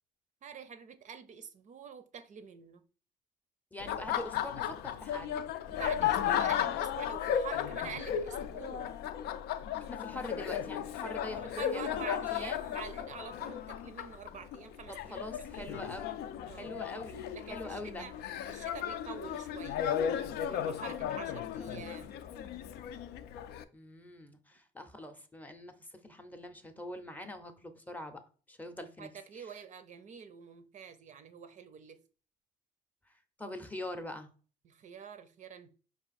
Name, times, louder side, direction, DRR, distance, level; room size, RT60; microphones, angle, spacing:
voice 1, 0.4-2.8 5.7-8.9 11.4-15.3 15.5-15.9 16.5-16.7 17.3-18.1 18.5-20.0 20.4-22.2 29.0-32.0 34.6-35.7, right 7 dB, 45° right, 0.5 m, -47 dB
voice 2, 3.7-5.4 9.9-12.6 14.9-16.2 16.5-18.1 23.7-28.2 28.5-29.1 29.4-29.5 33.4-34.3, left 1 dB, 10° left, 0.6 m, -43 dB
Laughter, 3.8-23.6, left 9 dB, 75° left, 0.4 m, -35 dB
4.8 x 2.4 x 4.0 m
cardioid pair, 110°, 17 cm